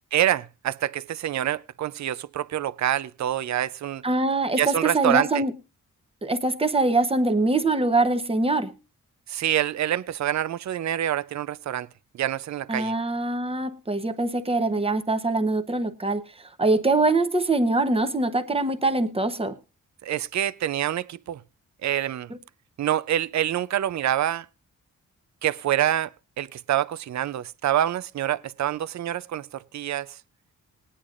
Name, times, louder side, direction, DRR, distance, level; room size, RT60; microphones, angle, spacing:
voice 1, 0.1-4.0 4.6-5.4 9.3-11.9 12.1-12.9 20.0-21.4 21.8-22.3 22.8-24.5 25.4-26.1 26.4-30.2, right 11 dB, 55° right, 0.5 m, -26 dB
voice 2, 4.0-5.5 6.2-8.8 12.7-19.6, right 2 dB, 15° right, 0.9 m, -23 dB
20.0 x 10.0 x 2.5 m
wide cardioid pair, 165°, 33 cm